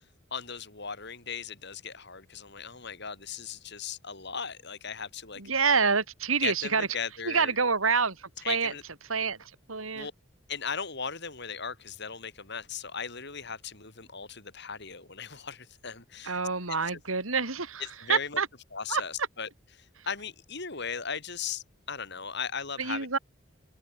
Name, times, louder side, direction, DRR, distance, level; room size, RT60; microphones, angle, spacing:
voice 1, 0.3-5.4 6.4-7.6 8.4-8.8 9.9-10.1 10.5-16.4 16.9-17.0 17.8-18.4 18.7-19.5 19.8-23.1, left 6 dB, 55° left, 7.1 m, -37 dB
voice 2, 5.4-6.9 7.2-8.1 8.5-8.7 9.1-9.4 9.7-10.1 16.2-17.8 18.1-18.5 18.9-19.0 22.8-23.2, right 5 dB, 85° right, 3.4 m, -27 dB
head